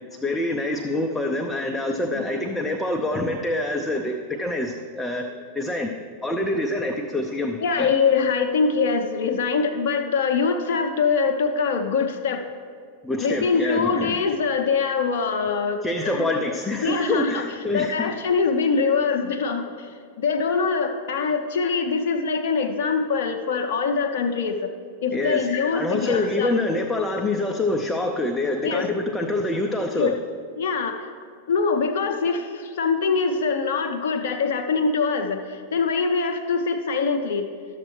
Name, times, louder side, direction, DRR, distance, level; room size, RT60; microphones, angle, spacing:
voice 1, 0.1-5.3 5.5-5.9 6.2-7.9 13.0-14.2 15.8-18.1 25.1-25.5 25.7-30.1, left 2 dB, 5° left, 2 dB, 0.5 m, -26 dB
voice 2, 7.6-12.4 13.2-24.7 25.0-26.5 28.6-28.9 29.9-30.1 30.6-31.1 31.5-37.5, left 5 dB, 55° left, 6 dB, 0.6 m, -24 dB
11.5 x 7.2 x 3.2 m, 2.1 s
figure-of-eight pair, 90°, 0 cm